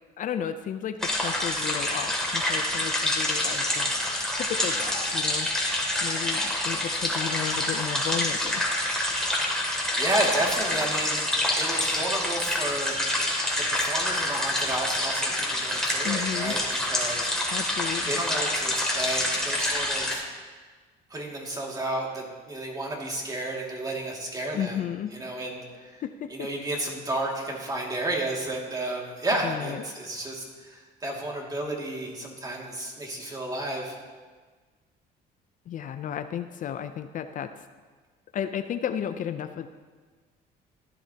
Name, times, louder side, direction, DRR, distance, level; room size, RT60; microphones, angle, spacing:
voice 1, 0.2-5.5 6.0-8.6 16.0-16.5 17.5-18.2 24.5-25.2 26.0-26.5 29.4-29.9 35.7-37.6 38.3-39.7, left 9 dB, 50° left, 9 dB, 0.5 m, -33 dB
sound 1, 1.0-20.1, left 1 dB, 5° left, 2.6 m, -27 dB
voice 2, 10.0-11.2 11.6-12.9 13.6-17.6 18.1-20.2 21.1-24.7 25.1-25.6 26.3-34.0, right 1 dB, 20° right, -1 dB, 2.3 m, -32 dB
15.0 x 10.5 x 2.9 m, 1.4 s
cardioid pair, 110°, 17 cm